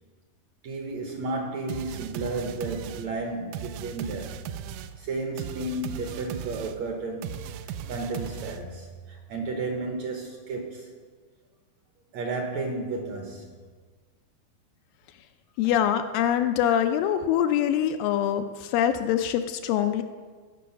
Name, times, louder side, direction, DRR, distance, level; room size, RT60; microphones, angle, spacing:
voice 1, 0.6-4.4 5.0-7.4 7.9-10.9 12.1-13.5, right 3 dB, 70° right, 2 dB, 1.8 m, -32 dB
sound 1, 1.7-8.9, right 9 dB, 85° right, 1.8 m, -38 dB
voice 2, 15.6-20.0, left 10 dB, 80° left, 8 dB, 2.1 m, -24 dB
17.0 x 6.3 x 5.7 m, 1.5 s
omnidirectional pair, 4.2 m